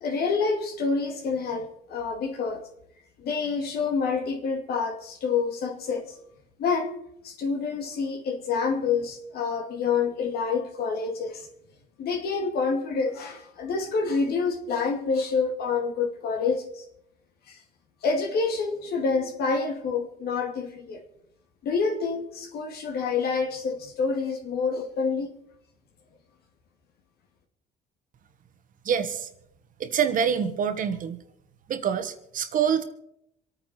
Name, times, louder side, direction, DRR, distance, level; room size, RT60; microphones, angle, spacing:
voice 1, 0.0-2.7 3.2-6.2 6.6-6.9 7.2-11.5 12.0-16.8 17.5-17.6 18.0-21.0 21.6-25.3, left 5 dB, 65° left, 2.4 m, -27 dB
voice 2, 28.8-29.3 29.8-31.2 31.7-32.8, right 7 dB, 50° right, 1.4 m, -26 dB
27.0 x 9.2 x 4.4 m
cardioid pair, 110°, 17 cm